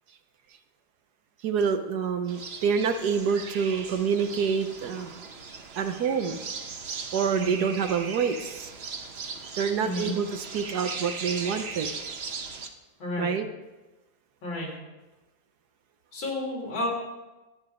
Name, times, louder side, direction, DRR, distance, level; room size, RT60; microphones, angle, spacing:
voice 1, 1.4-5.2 5.8-6.4 7.1-8.7 9.5-12.0 13.2-13.5, right 6 dB, 65° right, 8 dB, 1.2 m, -27 dB
sound 1, 2.3-12.7, right 5 dB, 45° right, 0.9 m, -38 dB
voice 2, 7.3-7.6 9.8-10.1 13.0-13.3 14.4-14.7 16.1-16.9, left 1 dB, 85° left, -2 dB, 4.0 m, -31 dB
13.0 x 9.5 x 4.9 m, 1.1 s
omnidirectional pair, 2.1 m